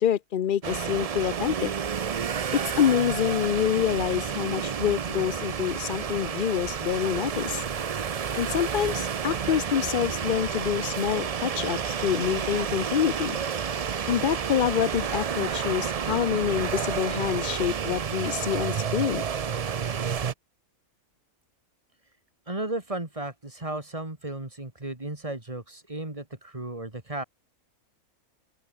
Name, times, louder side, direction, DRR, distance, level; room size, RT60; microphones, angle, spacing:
voice 1, 0.0-1.7 2.8-7.6 8.4-13.4 14.1-19.2, left 9 dB, 60° left, 0.5 m, -26 dB
sound 1, 0.6-20.3, right 7 dB, 75° right, 0.3 m, -30 dB
voice 2, 22.5-27.2, right 2 dB, 20° right, 2.9 m, -34 dB
open air
omnidirectional pair, 1.5 m